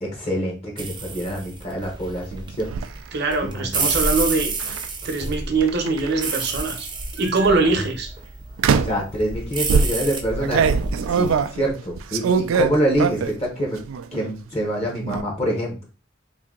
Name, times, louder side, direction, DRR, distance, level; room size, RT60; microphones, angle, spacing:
voice 1, 0.0-2.7 3.4-3.9 7.5-7.6 8.8-10.7 11.1-13.8 14.1-15.8, equal, 30° left, -1 dB, 0.9 m, -26 dB
sound 1, 0.8-11.5, right 4 dB, 25° right, 0.5 m, -30 dB
sound 2, 2.3-2.9 4.6-4.8 5.6-6.4 7.2-7.5 8.6-9.1 9.7-13.4 13.8-14.4 14.6-15.2, right 5 dB, 85° right, 0.3 m, -23 dB
voice 2, 3.1-4.5 5.0-6.9 7.2-8.1, right 3 dB, 55° right, 3 dB, 0.8 m, -22 dB
2.7 x 2.7 x 3.7 m, 0.34 s
head